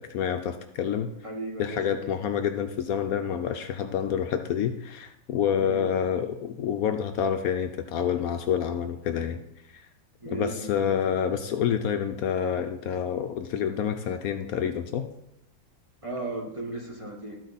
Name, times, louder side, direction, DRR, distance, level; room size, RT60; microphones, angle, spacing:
voice 1, 0.0-1.1 1.6-9.4 9.7-9.9 10.3-15.1, left 8 dB, 70° left, 7 dB, 1.0 m, -28 dB
voice 2, 1.2-2.2 5.6-5.9 10.2-10.9 16.0-17.4, right 2 dB, 25° right, -1 dB, 1.0 m, -36 dB
13.5 x 4.5 x 4.0 m, 0.83 s
omnidirectional pair, 1.7 m